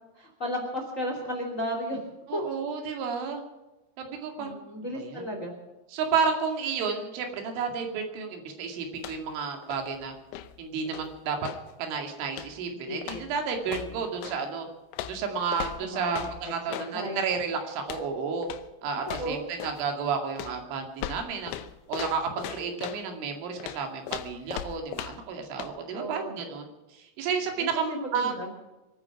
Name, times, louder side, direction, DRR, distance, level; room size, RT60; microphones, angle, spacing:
voice 1, 0.2-2.0 2.3-2.4 4.4-5.5 12.9-13.3 13.8-13.9 15.8-17.3 19.1-19.4 25.9-26.4 27.6-28.5, equal, 20° left, 2 dB, 2.2 m, -34 dB
voice 2, 2.3-3.4 4.0-4.6 5.0-5.3 5.9-10.1 10.6-11.4 11.8-14.7 15.1-18.5 18.8-21.5 21.9-28.4, right 5 dB, 90° right, 4 dB, 4.7 m, -31 dB
sound 1, 8.9-9.4 9.6-11.7 12.3-12.7 13.0-14.4 14.9-17.0 17.8-18.1 18.4-18.7 19.0-19.9 20.4-23.1 23.6-25.3 25.6-25.8, left 12 dB, 85° left, 3.2 m, -39 dB
25.5 x 9.6 x 6.0 m, 1.1 s
omnidirectional pair, 5.4 m